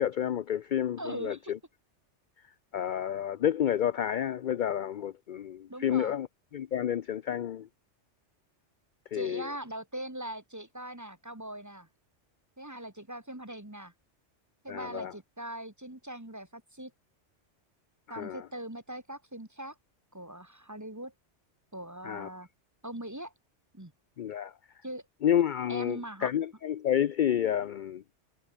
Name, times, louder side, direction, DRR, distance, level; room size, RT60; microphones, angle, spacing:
voice 1, 0.0-1.6 2.7-6.3 6.5-7.7 9.1-9.5 14.7-15.1 18.1-18.5 22.0-22.3 24.2-24.5 25.2-28.0, left 10 dB, 55° left, 0.6 m, -30 dB
voice 2, 1.0-1.5 5.7-6.1 9.1-11.9 12.6-13.9 14.6-16.9 18.1-19.8 20.1-21.1 21.7-22.5 22.8-23.3 23.7-23.9 24.8-25.0 25.7-26.3, right 1 dB, 15° right, 1.8 m, -41 dB
omnidirectional pair, 1.2 m